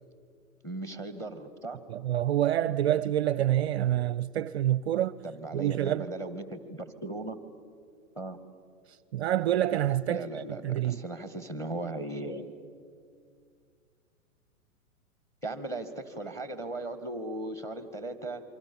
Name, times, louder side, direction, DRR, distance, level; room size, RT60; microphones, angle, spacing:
voice 1, 0.6-1.8 5.2-7.4 8.2-8.4 10.1-12.5 15.4-18.4, right 2 dB, 5° left, 1.9 m, -37 dB
voice 2, 1.9-5.2 5.5-6.1 9.1-10.2 10.5-11.0, right 12 dB, 50° right, 0.6 m, -27 dB
28.5 x 24.5 x 7.2 m
hypercardioid pair, 120°, 43 cm